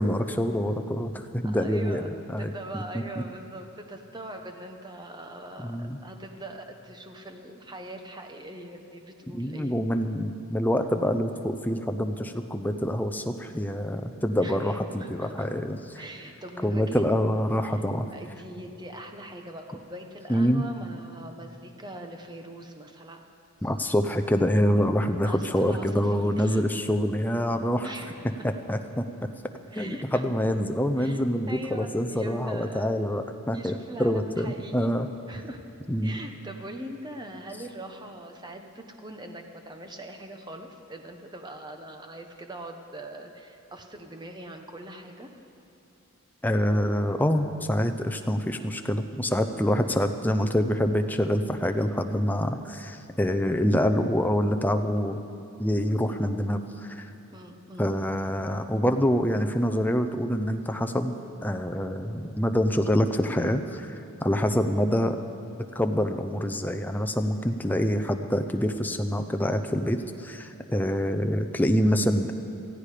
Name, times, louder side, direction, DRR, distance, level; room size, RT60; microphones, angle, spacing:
voice 1, 0.0-2.5 5.6-6.0 9.3-16.0 16.6-18.1 20.3-20.6 23.6-27.9 28.7-29.0 29.7-33.7 34.0-35.1 35.9-36.2 46.4-55.2 55.6-57.1 57.8-61.1 61.4-65.2 65.7-72.3, equal, 10° left, 6 dB, 0.6 m, -26 dB
voice 2, 1.4-9.8 14.4-15.5 16.0-17.1 17.6-17.8 18.1-23.2 25.1-26.6 27.8-28.4 29.7-30.2 31.0-32.9 33.5-34.9 35.3-35.6 36.0-45.3 57.3-57.9, right 1 dB, 20° right, 5 dB, 1.0 m, -42 dB
18.5 x 14.5 x 5.0 m, 3.0 s
head